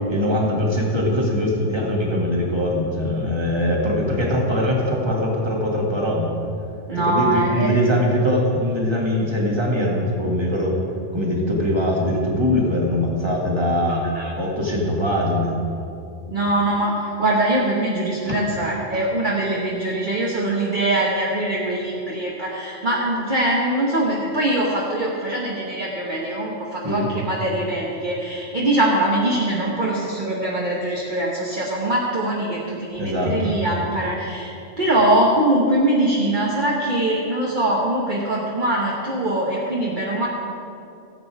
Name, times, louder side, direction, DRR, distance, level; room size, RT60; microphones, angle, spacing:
voice 1, 0.1-6.3 7.0-10.8 11.1-14.1 14.4-15.5 26.8-27.1 33.0-33.6, left 1 dB, 20° right, -2 dB, 1.8 m, -22 dB
voice 2, 6.9-7.7 13.9-14.3 16.3-40.3, right 1 dB, 40° right, -4 dB, 1.3 m, -22 dB
16.0 x 7.8 x 4.7 m, 2.7 s
omnidirectional pair, 1.3 m